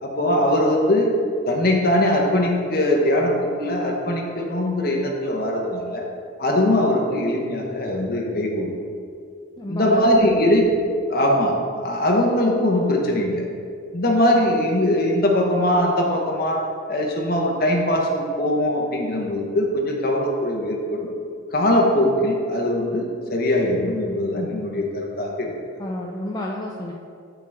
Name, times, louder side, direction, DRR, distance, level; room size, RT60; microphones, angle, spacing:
voice 1, 0.0-1.1 1.5-6.1 6.4-8.7 9.7-10.7 11.1-13.4 13.9-21.1 21.5-25.5, left 1 dB, 50° left, 0 dB, 1.0 m, -21 dB
voice 2, 9.6-10.5 25.8-26.9, left 1 dB, 20° left, -1 dB, 0.4 m, -31 dB
8.3 x 5.8 x 3.5 m, 2.4 s
head